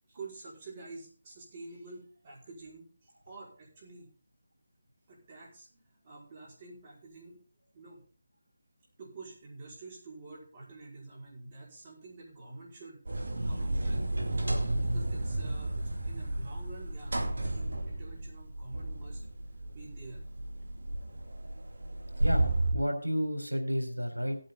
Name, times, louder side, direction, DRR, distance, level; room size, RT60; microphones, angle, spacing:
voice 1, 0.1-4.1 5.1-7.4 7.7-8.0 9.0-13.0 13.4-14.1 14.4-19.3 19.7-20.2, right 3 dB, 30° right, -3 dB, 5.3 m, -48 dB
sound 1, 13.1-22.7, right 1 dB, 60° right, 2.5 m, -32 dB
voice 2, 22.2-24.4, equal, 90° right, 4 dB, 4.0 m, -31 dB
17.5 x 8.8 x 4.0 m, 0.40 s
figure-of-eight pair, 160°, 0 cm